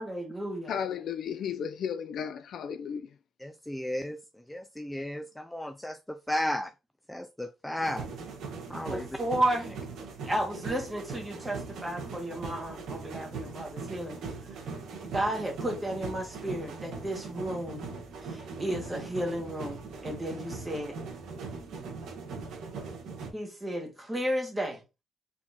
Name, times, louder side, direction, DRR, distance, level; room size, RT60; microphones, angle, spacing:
voice 1, 0.0-0.7 8.9-9.8 10.2-14.2 15.0-17.9 18.2-21.0 23.3-24.8, right 1 dB, 15° right, 2.0 m, -33 dB
voice 2, 0.7-3.1, left 7 dB, 65° left, 0.4 m, -34 dB
voice 3, 3.4-6.7 7.1-8.1 8.7-9.2, left 1 dB, 5° left, 0.4 m, -34 dB
sound 1, 7.8-23.3, right 4 dB, 80° right, 1.6 m, -40 dB
4.3 x 3.7 x 2.9 m
cardioid pair, 90°, 0 cm